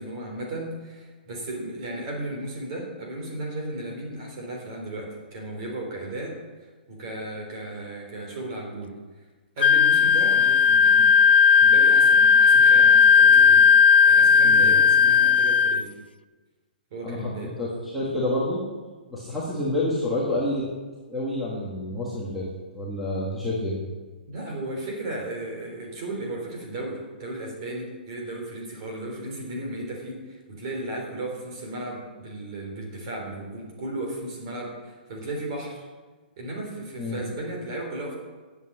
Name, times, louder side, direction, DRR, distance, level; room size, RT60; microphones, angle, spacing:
voice 1, 0.0-6.3 6.9-8.9 9.6-11.1 11.6-13.7 14.1-15.9 16.9-17.5 24.3-35.9 36.4-38.2, right 1 dB, 30° right, 0 dB, 3.7 m, -35 dB
Wind instrument woodwind instrument, 9.6-15.8, left 6 dB, 85° left, 0.6 m, -16 dB
voice 2, 14.4-14.8 17.0-17.2 17.6-18.6 19.1-20.6 21.1-22.4 22.7-23.8 37.0-37.2, left 1 dB, ahead, -9 dB, 1.6 m, -28 dB
11.0 x 8.1 x 8.6 m, 1.3 s
hypercardioid pair, 175°, 5 cm